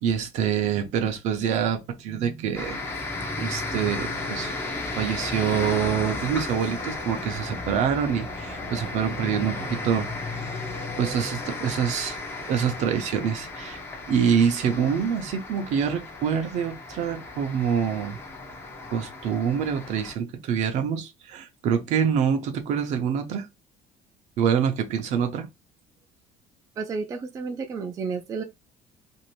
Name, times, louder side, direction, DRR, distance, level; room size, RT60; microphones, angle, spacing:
voice 1, 0.0-2.8 3.4-4.5 4.9-10.7 11.0-12.2 12.5-13.8 14.1-18.2 18.9-23.5 24.4-25.5, right 7 dB, 60° right, 0.7 m, -26 dB
sound 1, 2.6-20.2, left 2 dB, 15° left, 0.6 m, -34 dB
voice 2, 26.8-28.4, right 5 dB, 25° right, 0.4 m, -31 dB
2.7 x 2.5 x 3.0 m
cardioid pair, 155°, 14 cm